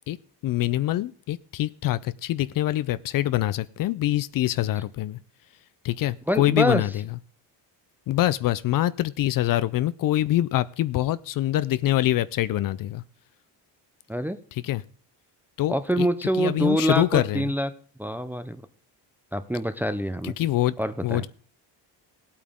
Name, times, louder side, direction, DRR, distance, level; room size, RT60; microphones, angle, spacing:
voice 1, 0.4-5.2 5.8-7.1 8.1-13.0 14.5-14.8 15.6-16.1 16.4-17.5 20.2-20.7 21.0-21.3, left 14 dB, 50° left, 18 dB, 0.5 m, -25 dB
voice 2, 6.3-6.8 14.1-14.4 15.7-17.7 18.0-18.6 19.3-20.3 20.8-21.2, equal, 5° right, 10 dB, 0.5 m, -25 dB
18.0 x 8.7 x 3.6 m, 0.44 s
cardioid pair, 135°, 43 cm